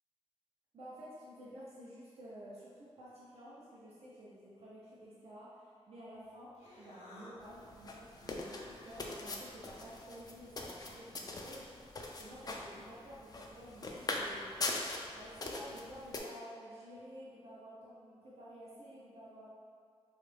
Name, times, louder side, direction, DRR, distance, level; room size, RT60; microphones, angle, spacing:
voice 1, 0.7-11.7 12.2-14.6 15.1-19.5, equal, 65° right, -8 dB, 0.7 m, -52 dB
Human voice, 6.1-11.3, left 1 dB, 90° left, 0.7 m, -58 dB
sound 1, 7.4-16.2, left 2 dB, 35° left, 0.4 m, -42 dB
3.0 x 2.4 x 3.2 m, 2.2 s
cardioid pair, 70°, 11 cm